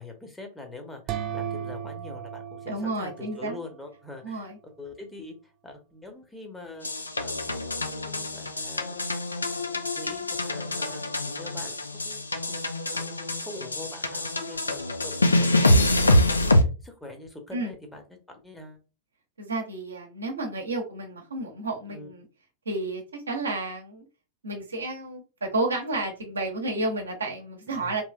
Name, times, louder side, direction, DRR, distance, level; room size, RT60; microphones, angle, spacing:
voice 1, 0.0-6.9 7.2-9.0 9.6-12.6 12.9-18.8 21.9-22.1 27.7-28.0, left 2 dB, 10° left, 3 dB, 0.8 m, -44 dB
sound 1, 1.1-3.8, right 9 dB, 40° right, 0.4 m, -36 dB
voice 2, 2.7-3.6 4.2-4.6 17.5-17.7 19.4-22.2 22.7-24.0 24.4-28.0, right 2 dB, 75° right, 2 dB, 0.8 m, -31 dB
sound 2, 6.8-16.6, left 1 dB, 80° left, 0.4 m, -25 dB
3.1 x 3.1 x 2.3 m, 0.33 s
figure-of-eight pair, 90°, 0 cm